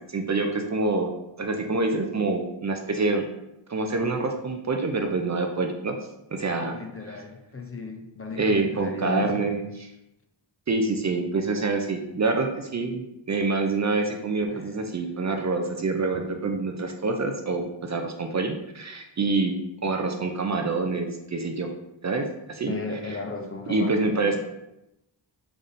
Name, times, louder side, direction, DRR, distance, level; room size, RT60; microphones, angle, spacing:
voice 1, 0.1-1.1 1.4-3.2 3.7-6.0 6.3-6.8 7.1-7.2 8.4-9.6 10.7-21.7 22.0-22.7 23.7-24.4, right 3 dB, 40° right, 3 dB, 0.4 m, -26 dB
voice 2, 6.7-9.5 14.5-14.9 22.7-24.4, left 3 dB, 30° left, 3 dB, 0.5 m, -35 dB
4.0 x 3.4 x 2.5 m, 0.89 s
wide cardioid pair, 65°, 45 cm